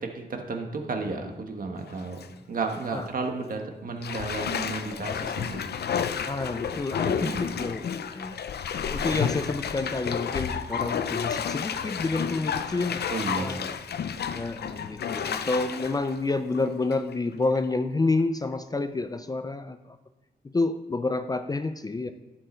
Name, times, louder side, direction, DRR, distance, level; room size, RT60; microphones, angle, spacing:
voice 1, 0.0-5.6 7.2-7.5 13.1-13.6, right 3 dB, 55° right, 3 dB, 1.5 m, -33 dB
Bathtub (filling or washing), 1.8-2.3 2.7-2.8 4.0-17.1 17.6-17.7, left 7 dB, 70° left, 0.6 m, -31 dB
voice 2, 6.3-7.9 8.1-8.4 8.8-13.6 14.3-20.0 20.4-22.1, left 3 dB, 20° left, 10 dB, 0.4 m, -29 dB
12.0 x 7.8 x 4.4 m, 1.0 s
wide cardioid pair, 135°, 18 cm